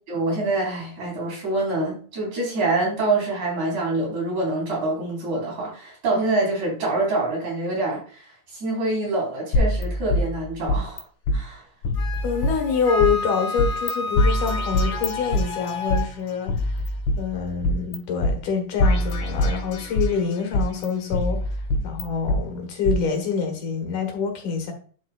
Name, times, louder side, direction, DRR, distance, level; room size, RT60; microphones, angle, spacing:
voice 1, 0.1-11.0 11.3-11.6, right 2 dB, 55° right, -4 dB, 5.2 m, -26 dB
sound 1, 9.5-11.0 11.3-11.4 11.8-13.1 13.6-13.9 14.2-16.0 16.5-18.0 18.2-18.3 18.8-20.2 20.5-22.4 22.9-23.0, left 1 dB, 85° left, 3.5 m, -23 dB
Wind instrument woodwind instrument, 12.0-16.0, left 2 dB, 40° left, 2.3 m, -31 dB
voice 2, 12.2-16.8 17.2-21.4 21.8-24.7, left 6 dB, 70° left, 3 dB, 2.7 m, -26 dB
11.5 x 5.3 x 2.3 m, 0.42 s
omnidirectional pair, 3.9 m